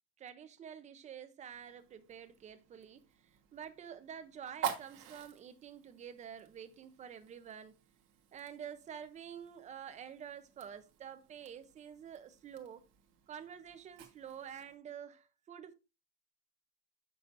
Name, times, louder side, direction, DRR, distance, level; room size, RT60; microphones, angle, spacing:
voice 1, 0.2-7.8 8.3-12.9 13.3-15.7, right 8 dB, 25° right, 0.6 m, -48 dB
Fire, 1.5-14.8, right 8 dB, 40° right, 1.3 m, -48 dB
8.1 x 6.2 x 2.6 m
cardioid pair, 165°, 30 cm